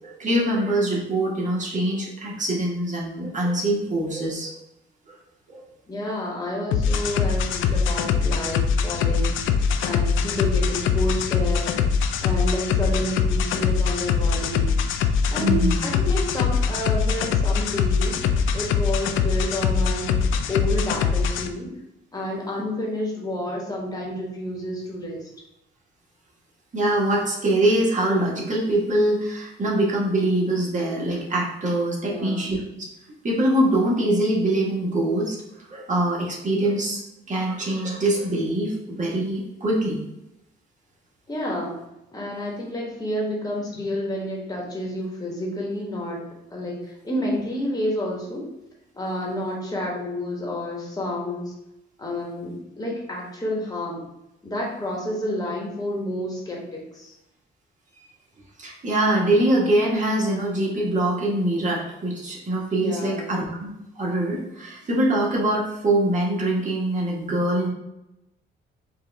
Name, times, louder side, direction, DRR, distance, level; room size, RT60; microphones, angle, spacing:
voice 1, 0.0-4.5 5.5-5.6 15.4-15.9 26.7-32.9 33.2-35.4 35.7-37.0 37.3-40.0 58.6-63.7 64.0-67.7, right 1 dB, 40° right, -3 dB, 1.4 m, -23 dB
voice 2, 5.9-11.8 12.2-14.7 15.3-20.2 20.5-21.7 22.1-25.3 32.0-32.5 41.3-41.8 42.1-46.2 46.5-48.4 48.9-51.5 52.0-54.1 54.4-57.1 62.8-63.3, left 1 dB, 20° left, -2 dB, 1.4 m, -30 dB
sound 1, 6.7-21.5, left 6 dB, 80° left, 0.4 m, -23 dB
4.5 x 2.5 x 3.4 m, 0.88 s
cardioid pair, 90°, 20 cm